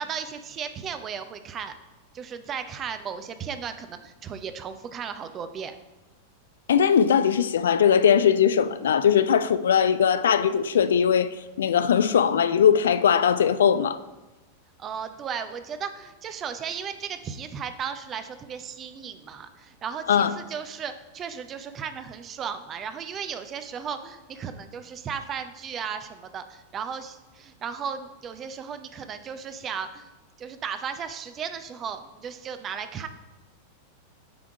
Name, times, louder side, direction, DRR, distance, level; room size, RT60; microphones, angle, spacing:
voice 1, 0.0-1.7 2.1-5.7 14.8-30.1 30.4-33.1, right 7 dB, 30° right, 0.6 m, -35 dB
voice 2, 6.7-11.3 11.6-14.0 20.1-20.3, left 8 dB, 65° left, 0.4 m, -20 dB
8.7 x 3.6 x 4.7 m
figure-of-eight pair, 90°, 0 cm